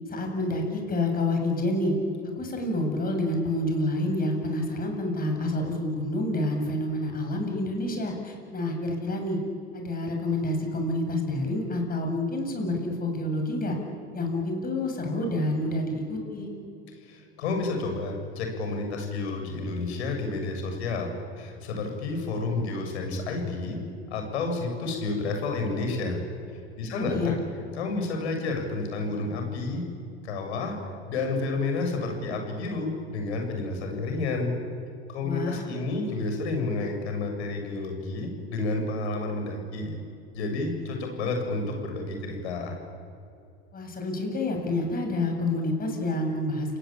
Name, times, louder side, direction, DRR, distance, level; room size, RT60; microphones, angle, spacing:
voice 1, 0.1-1.9 2.4-9.4 9.7-13.8 14.1-16.5 26.9-27.3 35.2-35.6 43.7-46.8, left 1 dB, 25° left, 3 dB, 7.9 m, -28 dB
voice 2, 17.0-21.1 21.4-23.8 24.1-26.2 26.8-27.4 27.7-29.8 30.2-30.8 31.1-34.5 35.1-40.0 40.3-42.8, left 3 dB, 80° left, 3 dB, 7.2 m, -30 dB
29.0 x 19.5 x 8.9 m, 2.5 s
hypercardioid pair, 100°, 33 cm